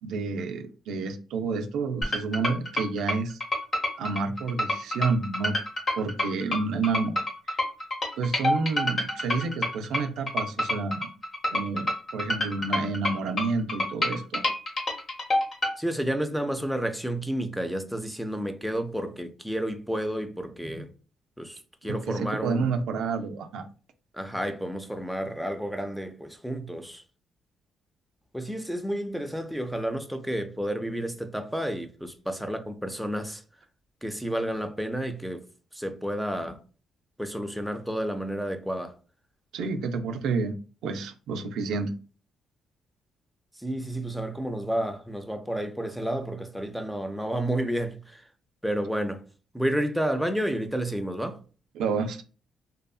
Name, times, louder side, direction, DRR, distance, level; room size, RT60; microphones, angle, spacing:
voice 1, 0.0-3.4 4.0-5.6 6.0-7.1 8.2-11.1 11.5-14.4 21.9-23.7 39.5-40.6 40.8-41.9 51.7-52.2, right 4 dB, 85° right, 0.3 m, -29 dB
sound 1, 2.0-15.7, left 1 dB, 40° left, 0.9 m, -28 dB
voice 2, 15.8-20.9 21.4-22.7 24.1-27.0 28.3-33.4 34.0-35.4 35.7-36.6 37.2-38.9 43.6-48.2 48.6-49.2 49.5-51.4, right 1 dB, ahead, 0.4 m, -31 dB
2.7 x 2.4 x 2.3 m
cardioid pair, 90°, 0 cm